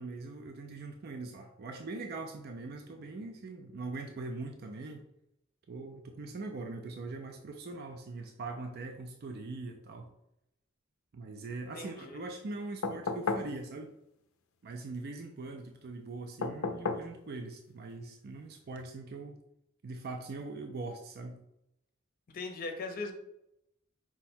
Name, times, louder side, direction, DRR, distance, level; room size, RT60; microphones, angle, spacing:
voice 1, 0.0-5.0 5.7-10.1 11.1-13.9 14.6-19.4 19.8-21.4, right 3 dB, 50° right, 4 dB, 0.4 m, -42 dB
voice 2, 11.7-12.2 22.3-23.1, left 3 dB, 45° left, 4 dB, 0.6 m, -39 dB
sound 1, 12.8-13.5 16.4-17.1 18.7-18.8, left 4 dB, 90° left, 0.5 m, -33 dB
4.7 x 2.1 x 4.3 m, 0.81 s
head